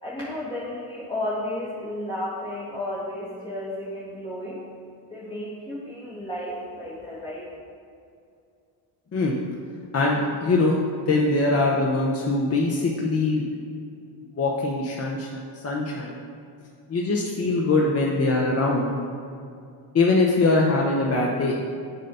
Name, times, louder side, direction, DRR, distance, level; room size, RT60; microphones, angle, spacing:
voice 1, 0.0-4.8 5.1-7.5, left 1 dB, 10° left, -10 dB, 1.4 m, -33 dB
voice 2, 9.9-13.5 14.4-15.3 15.5-16.2 16.9-19.0 19.9-21.6, left 2 dB, 30° left, -2 dB, 0.7 m, -22 dB
7.3 x 2.8 x 5.4 m, 2.5 s
cardioid pair, 85°, 48 cm